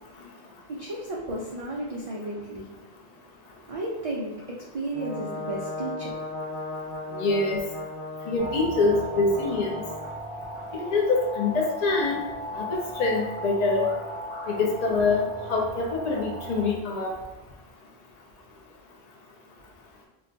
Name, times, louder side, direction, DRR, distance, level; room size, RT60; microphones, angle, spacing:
voice 1, 0.7-2.7 3.7-6.1, right 1 dB, 60° right, -3 dB, 0.3 m, -33 dB
Brass instrument, 4.9-10.1, left 2 dB, 70° left, 1.3 m, -36 dB
voice 2, 7.1-7.6 8.3-9.8 10.7-12.2 12.5-13.9 14.5-17.1, left 3 dB, 55° left, 0 dB, 0.4 m, -25 dB
sound 1, 8.4-16.7, equal, 35° right, 0.8 m, -37 dB
2.3 x 2.2 x 3.8 m, 1.1 s
omnidirectional pair, 1.1 m